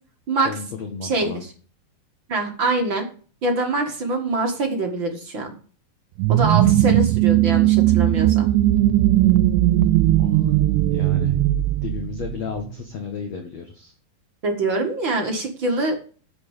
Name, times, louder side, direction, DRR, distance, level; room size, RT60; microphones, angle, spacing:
voice 1, 0.4-1.4 10.1-10.6 10.9-11.4 11.8-13.9, left 6 dB, 55° left, 4 dB, 2.1 m, -33 dB
voice 2, 1.0-1.5 2.3-3.1 3.4-5.5 6.3-8.5 14.4-16.0, right 2 dB, 40° right, 2 dB, 1.8 m, -24 dB
sound 1, 6.2-12.7, right 14 dB, 90° right, 2.7 m, -18 dB
8.6 x 7.1 x 8.3 m, 0.41 s
omnidirectional pair, 4.7 m